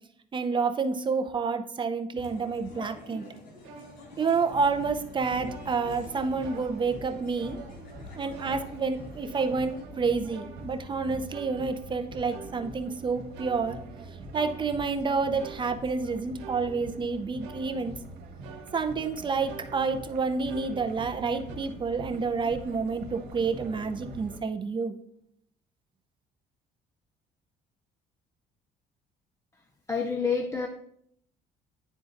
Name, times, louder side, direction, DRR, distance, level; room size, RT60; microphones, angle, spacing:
voice 1, 0.3-3.2 4.2-7.6 8.1-13.8 14.3-17.9 18.7-25.0, right 4 dB, 30° right, 7 dB, 0.6 m, -29 dB
sound 1, 2.1-9.8, left 2 dB, 70° left, 2.4 m, -48 dB
sound 2, 3.6-5.1 5.5-6.1 6.4-7.1 7.4-8.0 8.3-10.0 10.3-11.0 11.3-12.0 12.3-13.0 13.3-15.1 15.4-16.1 16.4-17.1 17.4-18.1 18.4-19.1 19.5-21.2 21.5-21.6, right 6 dB, 90° right, 1.0 m, -49 dB
sound 3, 4.5-24.4, right 1 dB, 70° right, 1.4 m, -44 dB
voice 2, 29.9-30.7, left 5 dB, 15° left, 3 dB, 0.5 m, -28 dB
11.0 x 3.8 x 2.6 m, 0.71 s
cardioid pair, 110°, 17 cm